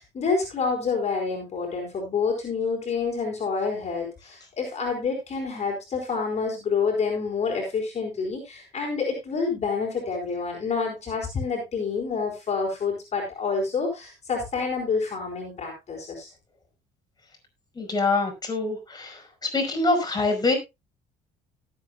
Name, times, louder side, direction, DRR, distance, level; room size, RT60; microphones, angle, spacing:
voice 1, 0.0-16.3, left 5 dB, 40° left, 0 dB, 4.6 m, -28 dB
voice 2, 17.7-19.2 19.5-20.6, left 3 dB, 25° left, 3 dB, 5.0 m, -24 dB
18.5 x 8.5 x 2.3 m, 0.23 s
cardioid pair, 110°, 17 cm